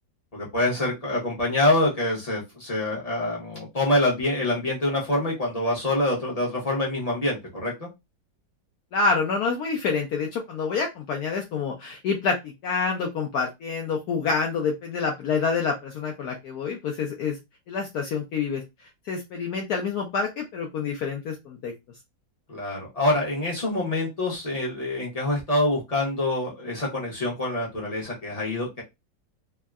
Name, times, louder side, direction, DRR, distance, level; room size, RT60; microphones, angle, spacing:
voice 1, 0.3-7.9 22.5-28.8, left 1 dB, 30° left, -4 dB, 0.6 m, -26 dB
voice 2, 8.9-17.4 17.7-18.6 19.1-21.7, left 5 dB, 70° left, 1 dB, 1.0 m, -27 dB
3.5 x 2.1 x 2.3 m, 0.22 s
omnidirectional pair, 1.9 m